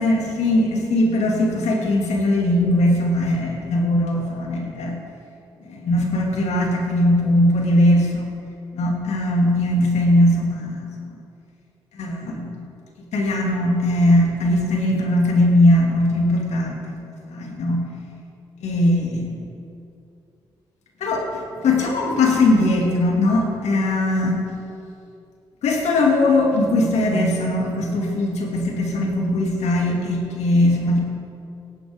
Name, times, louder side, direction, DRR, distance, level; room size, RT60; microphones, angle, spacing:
voice 1, 0.0-5.0 5.7-8.3 8.7-10.9 12.0-12.5 13.1-16.8 17.3-17.8 18.6-19.4 21.0-24.4 25.6-31.0, left 1 dB, 70° left, -1 dB, 2.4 m, -20 dB
16.5 x 11.5 x 3.7 m, 2.5 s
hypercardioid pair, 40°, 12 cm